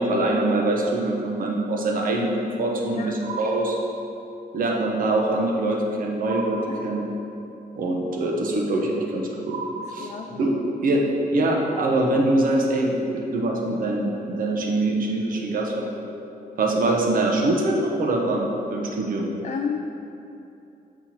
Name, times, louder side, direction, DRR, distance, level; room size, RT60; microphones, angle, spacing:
voice 1, 0.0-3.8 4.5-7.1 7.8-9.6 9.9-10.5 10.8-11.0 11.3-16.1 16.6-19.3, right 2 dB, 60° right, 0 dB, 1.0 m, -24 dB
sound 1, 3.2-4.5 6.2-7.5 9.5-10.7, right 3 dB, 90° right, 0.5 m, -36 dB
voice 2, 9.8-10.4 19.4-19.8, left 7 dB, 45° left, 3 dB, 0.4 m, -32 dB
7.5 x 4.5 x 4.3 m, 2.8 s
wide cardioid pair, 145°, 16 cm